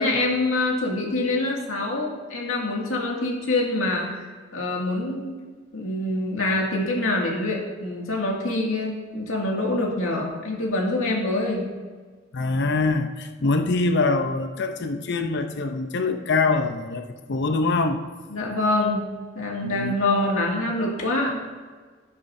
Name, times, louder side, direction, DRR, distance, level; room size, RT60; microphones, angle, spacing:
voice 1, 0.0-4.2 4.5-5.3 5.7-11.7 18.3-19.0 19.4-21.4, left 2 dB, 80° left, -1 dB, 2.2 m, -25 dB
voice 2, 12.3-17.0 17.3-18.0 19.6-19.9, left 3 dB, 55° left, 7 dB, 0.7 m, -24 dB
12.5 x 9.7 x 2.7 m, 1.5 s
head